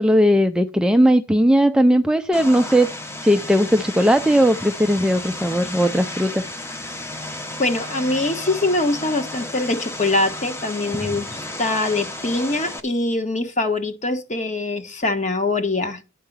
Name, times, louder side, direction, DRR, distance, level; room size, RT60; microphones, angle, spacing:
voice 1, 0.0-2.9 3.2-6.4 11.0-11.1, equal, 5° right, 0.4 m, -17 dB
Vehicle, 2.3-12.8, left 1 dB, 15° left, 0.9 m, -33 dB
voice 2, 7.6-16.0, left 2 dB, 35° left, 1.3 m, -23 dB
11.0 x 4.7 x 7.2 m
head